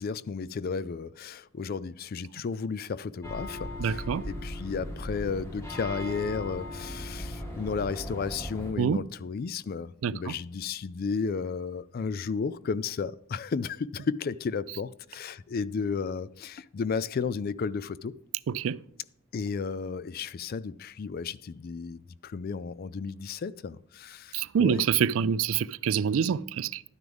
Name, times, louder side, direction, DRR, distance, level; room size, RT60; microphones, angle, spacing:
voice 1, 0.0-18.1 19.3-24.9, left 5 dB, 45° left, 0.3 m, -33 dB
sound 1, 3.2-8.7, left 1 dB, 15° left, 1.7 m, -38 dB
voice 2, 3.8-4.2 8.8-9.0 10.0-10.3 18.5-18.8 24.3-26.8, right 7 dB, 70° right, 0.4 m, -26 dB
12.0 x 9.5 x 3.5 m
head